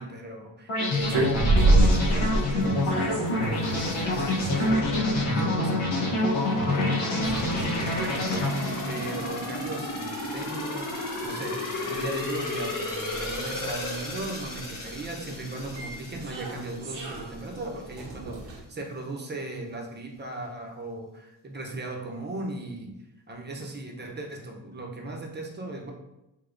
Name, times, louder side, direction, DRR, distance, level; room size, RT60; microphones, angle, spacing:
voice 1, 0.0-22.9 23.3-25.9, right 2 dB, 25° right, 1 dB, 0.6 m, -37 dB
sound 1, 0.7-9.7, left 1 dB, 85° left, 0.9 m, -27 dB
sound 2, 1.0-18.6, right 2 dB, 65° right, 0.7 m, -31 dB
sound 3, 6.4-17.2 17.6-17.7, left 2 dB, 45° left, 1.1 m, -35 dB
3.5 x 2.7 x 2.5 m, 0.92 s
cardioid pair, 85°, 45 cm